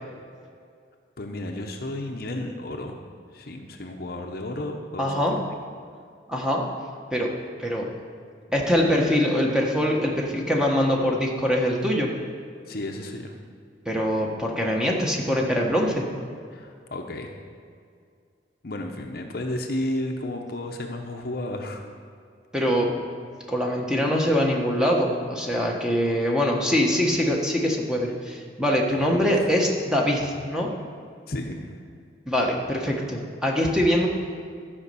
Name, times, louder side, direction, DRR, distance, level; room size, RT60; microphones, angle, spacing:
voice 1, 1.2-3.0 3.3-5.3 12.7-13.4 16.5-17.3 18.6-21.9 28.9-29.2 31.3-31.8, left 1 dB, 50° left, 3 dB, 0.8 m, -32 dB
voice 2, 5.0-5.3 6.3-6.6 7.1-7.3 7.6-7.8 8.5-12.1 13.8-16.0 22.5-22.9 23.5-30.7 32.3-34.1, equal, 5° right, -1 dB, 1.2 m, -23 dB
12.5 x 5.3 x 6.9 m, 2.3 s
head